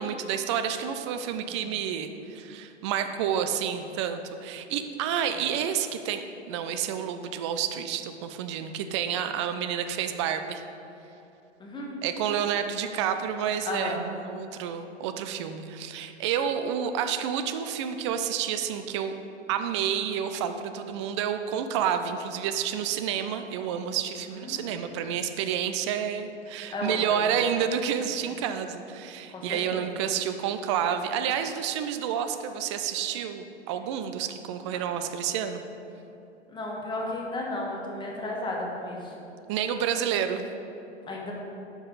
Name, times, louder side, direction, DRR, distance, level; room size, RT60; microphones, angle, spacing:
voice 1, 0.0-10.6 12.0-19.1 19.5-35.6 39.5-40.5, right 8 dB, 25° right, 8 dB, 0.4 m, -29 dB
voice 2, 11.6-12.0 13.6-14.0 24.3-24.8 26.7-27.3 29.3-29.8 36.5-39.3 41.0-41.3, left 2 dB, 15° left, -2 dB, 1.4 m, -34 dB
9.9 x 6.1 x 4.1 m, 2.9 s
figure-of-eight pair, 100°, 35 cm